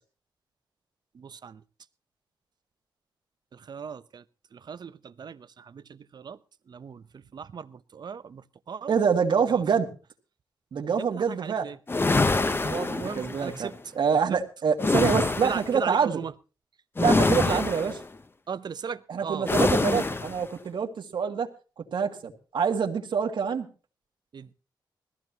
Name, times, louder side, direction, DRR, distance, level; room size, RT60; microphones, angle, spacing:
voice 1, 1.1-1.6 3.5-4.2 4.5-6.4 6.7-9.0 9.5-9.6 11.0-11.8 12.9-13.7 15.4-16.3 17.4-17.6 18.5-19.7 24.3-24.5, right 6 dB, 60° right, 0.8 m, -38 dB
voice 2, 8.9-9.9 10.7-11.7 12.6-16.2 17.0-17.9 19.1-21.5 21.9-23.7, right 6 dB, 75° right, 1.9 m, -26 dB
sound 1, 11.9-13.5 14.8-15.7 17.0-18.0 19.5-20.4, left 3 dB, 30° left, 0.9 m, -25 dB
20.0 x 15.0 x 2.9 m
cardioid pair, 85°, 8 cm